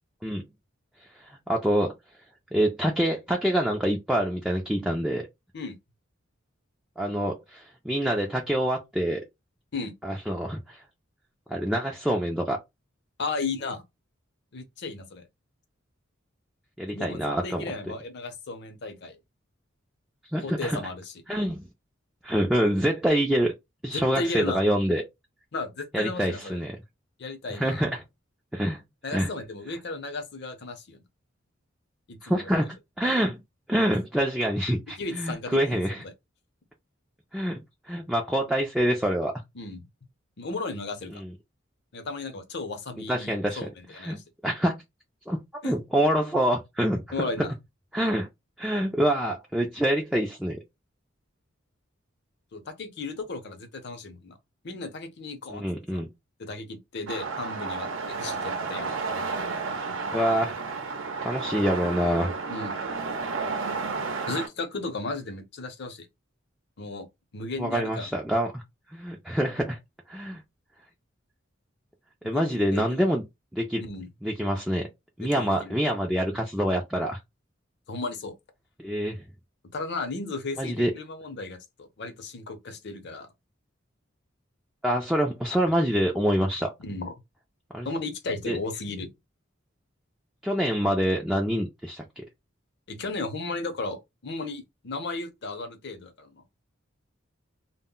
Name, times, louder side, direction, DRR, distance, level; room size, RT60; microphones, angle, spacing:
voice 1, 1.2-1.9 2.5-5.3 7.0-9.2 10.0-10.8 11.5-12.6 16.8-17.6 20.3-20.8 21.3-21.6 22.2-23.5 23.8-25.0 25.9-26.8 27.5-28.0 28.5-28.8 29.1-29.3 32.2-33.4 33.7-36.0 37.3-39.3 41.1-41.3 43.1-43.6 43.9-44.8 45.3-47.3 47.9-48.3 48.6-50.6 55.5-56.1 60.1-60.6 61.2-62.3 67.6-68.6 68.9-69.8 70.1-70.4 72.2-73.2 73.5-73.8 74.2-74.9 75.2-77.2 78.8-79.2 80.6-80.9 84.8-86.7 87.7-87.9 88.5-88.6 90.4-92.2, equal, 5° right, 0.3 m, -26 dB
voice 2, 13.2-13.8 14.5-15.2 16.9-19.2 20.4-21.1 23.9-24.6 25.5-26.6 27.2-27.8 29.0-31.0 32.1-32.5 34.9-36.1 39.5-39.8 40.4-41.2 41.9-44.2 45.6-45.8 47.1-47.5 52.5-54.4 54.6-55.6 55.9-56.0 56.4-59.1 62.5-62.8 64.3-66.1 66.8-67.1 67.3-68.2 72.2-73.1 73.8-74.1 75.2-75.8 77.9-78.3 79.7-83.3 86.8-87.1 87.8-89.1 92.9-96.4, left 3 dB, 60° left, 0.7 m, -35 dB
sound 1, 57.1-64.5, right 4 dB, 85° right, 0.6 m, -32 dB
2.1 x 2.1 x 3.6 m
head